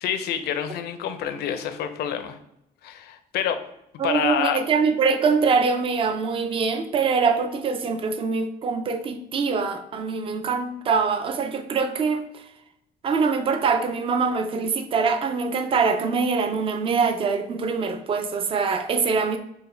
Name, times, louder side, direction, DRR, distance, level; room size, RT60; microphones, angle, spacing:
voice 1, 0.0-2.4 2.8-3.6 4.0-4.6, left 9 dB, 70° left, 9 dB, 0.5 m, -27 dB
voice 2, 4.0-12.4 13.0-19.4, right 5 dB, 30° right, 8 dB, 0.4 m, -23 dB
4.6 x 2.1 x 3.2 m, 0.79 s
cardioid pair, 110°, 17 cm